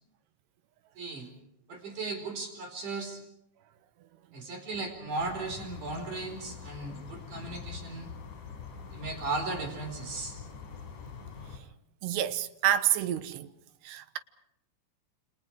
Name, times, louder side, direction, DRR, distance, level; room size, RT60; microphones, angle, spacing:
voice 1, 1.0-1.3 1.7-3.2 4.3-8.1 8.9-10.4, right 3 dB, 50° right, 5.9 m, -36 dB
sound 1, 5.2-11.6, left 6 dB, 50° left, 5.1 m, -44 dB
voice 2, 12.0-13.5 13.8-14.2, right 11 dB, 80° right, 3.2 m, -28 dB
29.0 x 28.5 x 4.8 m
omnidirectional pair, 4.9 m